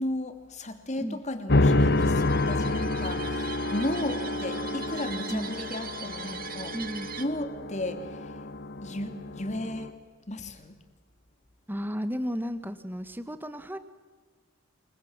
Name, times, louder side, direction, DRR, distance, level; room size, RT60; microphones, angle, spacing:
voice 1, 0.0-6.7 7.2-8.4 8.8-10.0 10.3-10.8, left 1 dB, 35° left, 8 dB, 2.8 m, -34 dB
sound 1, 1.5-9.9, left 2 dB, 55° left, 1.3 m, -28 dB
sound 2, 1.7-7.2, right 8 dB, 45° right, 1.8 m, -42 dB
voice 2, 2.0-3.0 5.3-5.5 6.7-7.1 11.7-13.8, equal, 10° right, 10 dB, 1.4 m, -34 dB
28.5 x 23.5 x 7.5 m, 1.4 s
head